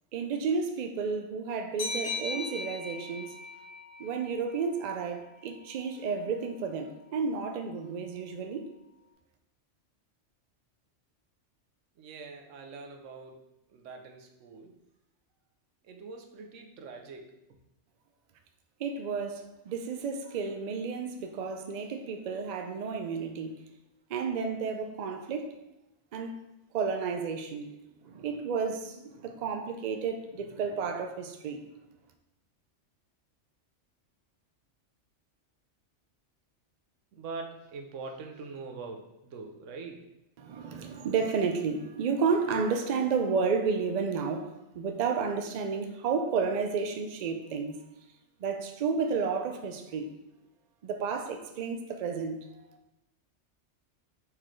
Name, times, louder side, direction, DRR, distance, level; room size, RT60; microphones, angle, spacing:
voice 1, 0.1-3.4 4.0-8.7 18.8-23.5 24.1-25.5 26.1-26.4 26.7-27.7 28.0-31.6 40.4-47.8 48.4-50.1 50.8-52.7, right 5 dB, 65° right, 0.4 m, -31 dB
sound 1, 1.8-5.1, left 3 dB, 90° left, 1.8 m, -38 dB
voice 2, 12.0-13.4 13.7-14.7 15.8-17.3 37.1-40.0, right 4 dB, 85° right, 1.0 m, -43 dB
4.5 x 3.7 x 3.1 m
omnidirectional pair, 1.2 m